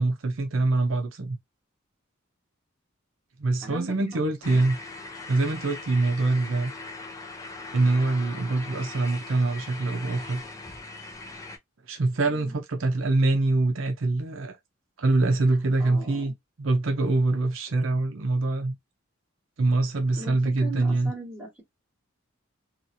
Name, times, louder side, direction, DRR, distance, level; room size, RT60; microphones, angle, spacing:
voice 1, 0.0-1.4 3.4-4.8 5.3-6.7 7.7-10.5 11.9-14.6 15.0-18.8 19.6-21.1, right 2 dB, 70° right, 0.6 m, -24 dB
voice 2, 3.6-3.9 4.5-4.6 8.3-8.4 12.3-12.6 15.8-16.3 20.2-21.6, right 2 dB, 10° right, 1.5 m, -39 dB
sound 1, 4.4-11.6, left 3 dB, 15° left, 0.5 m, -40 dB
2.9 x 2.4 x 2.6 m
head